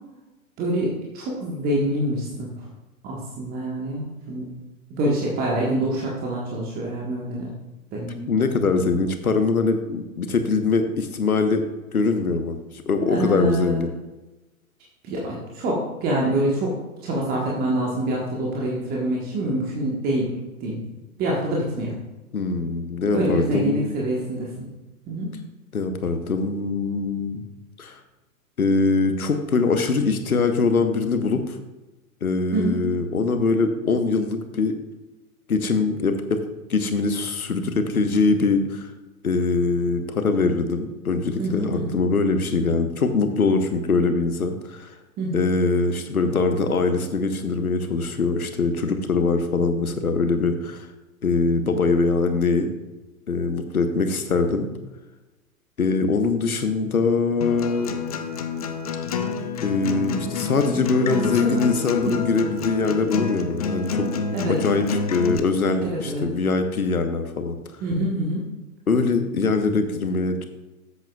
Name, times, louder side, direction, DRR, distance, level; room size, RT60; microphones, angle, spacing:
voice 1, 0.6-2.5 3.0-4.5 5.0-7.5 7.9-8.3 13.1-13.8 15.0-16.8 17.0-20.3 20.6-20.8 21.2-21.9 23.1-24.5 25.1-25.3 32.5-32.8 41.4-42.0 45.2-45.4 61.1-61.7 62.0-62.2 64.3-64.6 65.8-66.2 67.8-68.5, right 1 dB, 20° right, -3 dB, 1.4 m, -26 dB
voice 2, 8.3-11.6 11.9-12.6 12.9-13.9 22.3-24.0 25.7-27.4 27.8-28.0 28.6-31.6 32.2-34.7 35.5-36.4 36.7-38.9 39.2-44.9 45.3-50.9 51.2-52.7 53.3-54.7 55.8-57.9 59.6-64.2 64.5-67.6 68.9-70.4, left 4 dB, 75° left, 7 dB, 1.2 m, -22 dB
Acoustic guitar, 57.4-65.4, left 5 dB, 25° left, 0.4 m, -28 dB
12.5 x 8.1 x 2.4 m, 1.1 s
figure-of-eight pair, 115°, 44 cm